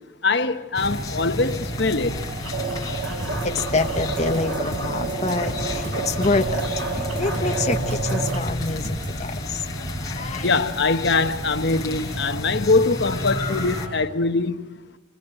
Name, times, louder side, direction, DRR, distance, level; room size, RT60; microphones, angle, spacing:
voice 1, 0.2-2.1 10.4-14.7, left 3 dB, 60° left, 1.1 m, -22 dB
sound 1, 0.7-13.9, left 1 dB, 20° left, 4.9 m, -30 dB
sound 2, 2.4-8.4, right 3 dB, 85° right, 5.0 m, -30 dB
sound 3, 3.2-9.2, equal, 40° right, 6.3 m, -35 dB
voice 2, 3.4-6.6 6.9-9.6 10.0-10.5, left 3 dB, 35° left, 1.0 m, -27 dB
28.0 x 21.0 x 8.9 m
head